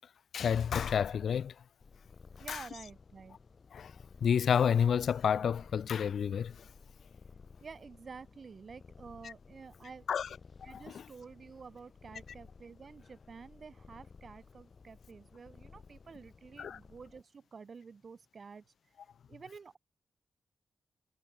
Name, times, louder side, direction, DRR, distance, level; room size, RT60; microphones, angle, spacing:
voice 1, 0.3-1.5 2.5-2.6 3.7-3.9 4.2-6.7 10.1-10.3 10.7-11.0 16.6-16.8, left 7 dB, 75° left, 0.5 m, -30 dB
Purr, 1.8-17.2, left 5 dB, 50° left, 2.9 m, -56 dB
voice 2, 2.4-3.4 7.6-10.1 10.6-18.7 19.3-19.8, right 5 dB, 55° right, 6.2 m, -50 dB
cardioid pair, 70°, 0 cm